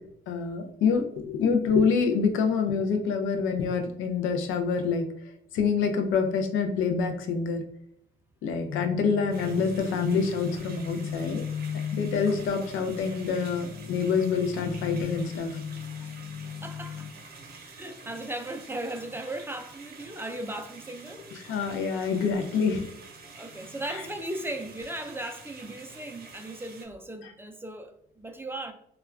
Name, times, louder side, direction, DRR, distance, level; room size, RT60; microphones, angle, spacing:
voice 1, 0.3-5.1 5.5-7.6 8.4-11.4 11.9-15.6 21.3-22.9 27.2-27.3, left 5 dB, 85° left, 0.5 m, -26 dB
sound 1, 8.7-17.1, left 7 dB, 40° left, 0.7 m, -37 dB
sound 2, 9.3-26.9, right 4 dB, 50° right, 0.7 m, -48 dB
voice 2, 16.6-17.1 17.5-21.3 23.3-28.7, right 1 dB, 10° right, 0.3 m, -37 dB
2.3 x 2.2 x 3.4 m
cardioid pair, 90°, 20 cm